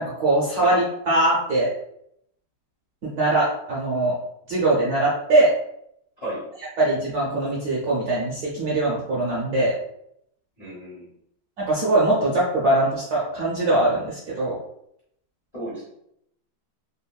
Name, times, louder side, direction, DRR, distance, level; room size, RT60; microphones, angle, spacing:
voice 1, 0.0-1.7 3.0-4.2 4.5-5.5 6.8-9.7 11.6-14.6, right 2 dB, 70° right, -6 dB, 0.9 m, -22 dB
voice 2, 6.2-6.5 10.6-11.1 15.5-15.9, right 1 dB, 45° left, -7 dB, 0.4 m, -33 dB
3.4 x 2.2 x 2.2 m, 0.75 s
omnidirectional pair, 2.3 m